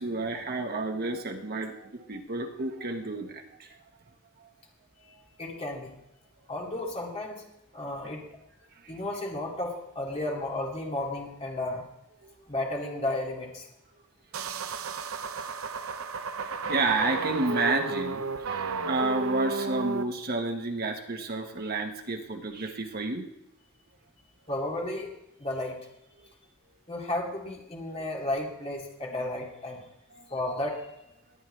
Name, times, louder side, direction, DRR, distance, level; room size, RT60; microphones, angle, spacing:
voice 1, 0.0-3.7 12.2-12.3 16.4-23.3 30.1-30.2, right 3 dB, 45° right, 4 dB, 1.2 m, -30 dB
voice 2, 5.4-5.9 6.5-7.4 7.7-8.2 8.9-11.9 12.5-13.7 24.5-25.1 25.4-25.8 26.9-29.8 30.3-30.9, left 1 dB, 30° left, -1 dB, 2.4 m, -33 dB
sound 1, 14.3-20.0, right 4 dB, 70° right, 0.7 m, -33 dB
20.0 x 9.0 x 3.3 m, 0.85 s
head